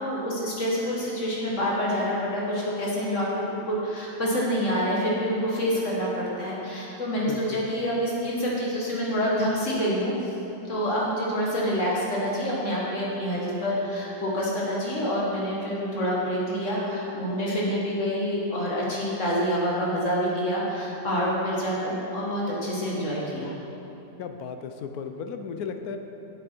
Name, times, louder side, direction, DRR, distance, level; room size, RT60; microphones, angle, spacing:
voice 1, 0.0-10.1 10.7-23.5, equal, 45° left, -5 dB, 1.8 m, -27 dB
voice 2, 7.3-7.7 24.2-26.0, left 6 dB, 70° left, 6 dB, 1.0 m, -35 dB
8.1 x 7.6 x 4.4 m, 3.0 s
omnidirectional pair, 1.8 m